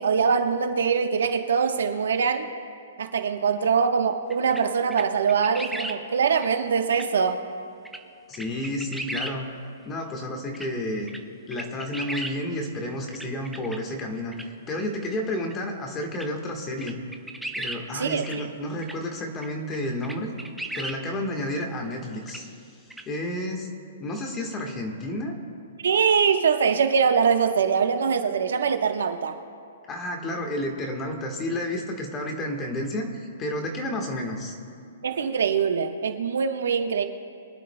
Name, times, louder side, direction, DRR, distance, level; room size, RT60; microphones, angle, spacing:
voice 1, 0.0-2.5 3.0-7.4 17.9-18.2 25.8-29.4 35.0-37.0, right 6 dB, 80° right, 6 dB, 1.1 m, -23 dB
sound 1, 4.3-4.6 4.9-6.0 6.4-6.5 6.9-7.1 7.8-8.0 8.3-9.4 10.5-10.7 11.1-11.2 11.5-12.4 13.1-13.8 14.3-14.4 15.5-15.6 16.1-16.3 16.8-17.8 18.2-18.4 18.8-18.9 19.4-19.5 19.7-19.8 20.0-21.0 22.3-22.4 22.9-23.0, right 2 dB, ahead, 0.5 m, -35 dB
voice 2, 8.3-9.5 9.8-11.1 11.5-17.0 17.6-20.3 20.7-22.6 23.1-23.7 24.0-25.3 29.9-34.6, left 1 dB, 15° left, 2 dB, 1.4 m, -31 dB
23.0 x 11.5 x 2.2 m, 2.3 s
hypercardioid pair, 165°, 0 cm